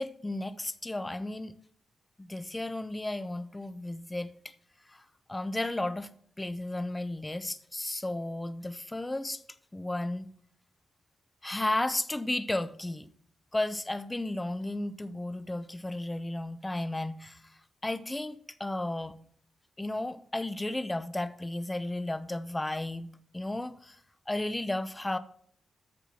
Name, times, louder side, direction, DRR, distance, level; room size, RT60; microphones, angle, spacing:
voice 1, 0.0-1.6 2.2-4.5 4.9-6.1 6.4-9.4 9.7-10.3 11.4-13.1 13.5-19.2 19.8-23.1 23.3-24.0 24.3-25.2, left 1 dB, 10° left, 0.7 m, -34 dB
13.5 x 4.6 x 7.1 m
wide cardioid pair, 150°, 0 cm